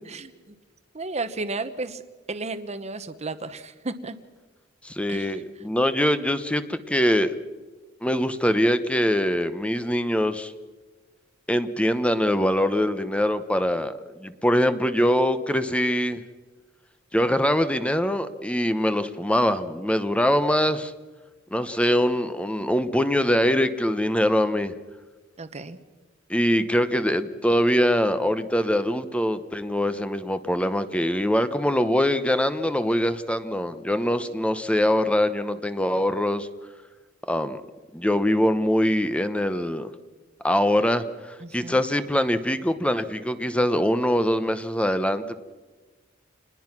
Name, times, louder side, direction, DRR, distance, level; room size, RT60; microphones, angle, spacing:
voice 1, 0.1-0.5 0.9-2.0 2.3-4.2 5.1-5.6 25.4-25.8 41.4-41.8, right 3 dB, 35° right, 11 dB, 1.0 m, -33 dB
voice 2, 4.8-7.3 8.0-10.5 11.5-13.9 14.2-16.2 17.1-20.9 21.5-24.7 26.3-36.5 37.3-37.6 37.9-39.9 40.4-45.4, equal, 5° left, 11 dB, 0.9 m, -23 dB
27.5 x 20.5 x 6.0 m, 1.3 s
head